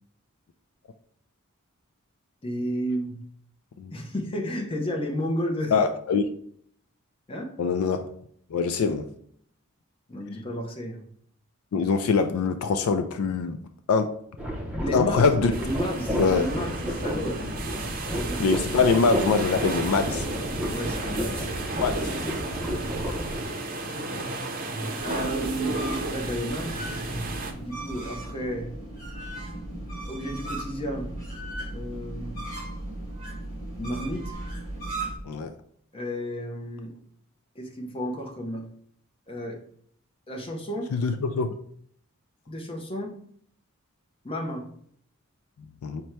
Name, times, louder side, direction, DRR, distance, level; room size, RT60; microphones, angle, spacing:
voice 1, 2.4-3.3 3.9-5.7 7.3-7.6 10.1-11.1 14.8-15.3 15.6-17.4 18.1-18.4 20.7-21.9 22.6-23.0 23.5-23.9 25.0-25.8 26.1-26.8 27.6-28.8 30.0-31.2 31.7-32.4 33.8-34.3 35.9-36.9 37.5-38.7 39.3-39.6 40.3-40.9 42.5-43.1 44.2-44.7, equal, 25° left, 0.7 m, -32 dB
voice 2, 5.7-6.3 7.6-8.1 8.5-9.1 11.7-14.2 14.9-15.5 16.2-16.5 18.4-20.3 21.8-22.1 23.9-24.3 35.2-35.5 40.9-41.5 45.8-46.0, left 5 dB, 75° left, 0.3 m, -24 dB
sound 1, 14.4-23.5, equal, 5° right, 0.6 m, -31 dB
sound 2, 15.5-27.5, right 2 dB, 40° right, 0.6 m, -33 dB
sound 3, 25.0-35.2, right 1 dB, 45° left, 1.7 m, -36 dB
5.3 x 2.2 x 4.5 m
head